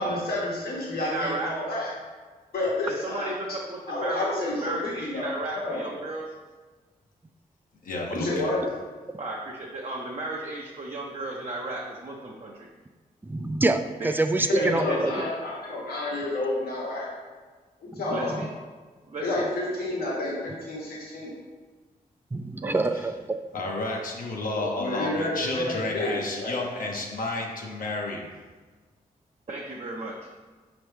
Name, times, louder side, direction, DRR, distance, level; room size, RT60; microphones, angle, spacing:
voice 1, 0.0-1.9 2.5-3.4 3.9-5.8 8.1-8.6 14.5-17.1 17.8-18.4 19.2-21.3 24.5-26.6, left 1 dB, 85° left, -5 dB, 1.2 m, -29 dB
voice 2, 1.0-1.5 2.9-6.3 9.2-12.7 14.0-14.1 14.4-15.3 18.1-18.5 19.1-19.6 22.6-22.9 29.5-30.3, right 2 dB, 45° right, -3 dB, 0.6 m, -35 dB
voice 3, 7.8-8.5 23.5-28.2, left 2 dB, 65° left, -1 dB, 0.7 m, -31 dB
voice 4, 13.3-15.1 22.3-23.4, right 2 dB, 15° right, 8 dB, 0.3 m, -25 dB
5.1 x 3.0 x 3.3 m, 1.4 s
cardioid pair, 55°, 16 cm